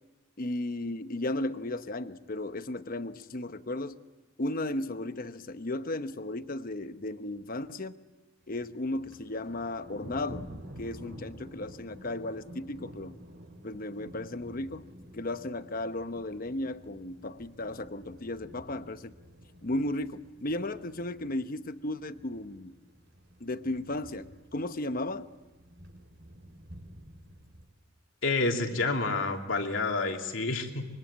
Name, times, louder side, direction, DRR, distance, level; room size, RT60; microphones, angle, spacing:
voice 1, 0.4-4.0 4.4-7.9 8.5-10.5 10.8-13.2 13.6-14.9 15.1-19.1 19.6-22.8 23.4-25.3, left 1 dB, 45° left, 0.9 m, -35 dB
Thunder, 8.4-27.7, equal, 60° right, 4.4 m, -50 dB
voice 2, 28.2-30.9, left 3 dB, 75° left, 2.9 m, -29 dB
25.0 x 23.5 x 8.8 m
head